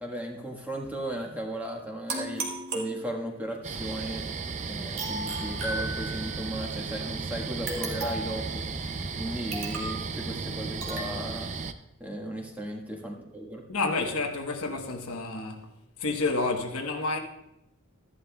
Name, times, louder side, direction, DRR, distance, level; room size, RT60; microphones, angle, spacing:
voice 1, 0.0-2.4 2.7-4.2 4.7-8.6 9.2-11.5 12.0-13.6, right 1 dB, 5° right, 1.4 m, -36 dB
sound 1, 2.1-3.5 5.0-6.4 7.7-8.4 9.5-10.0 10.8-11.2, right 2 dB, 60° right, 1.8 m, -34 dB
sound 2, 3.6-11.7, right 4 dB, 35° right, 0.4 m, -35 dB
voice 2, 13.7-15.7 16.0-17.2, left 3 dB, 80° left, 1.1 m, -29 dB
14.0 x 11.0 x 2.3 m
head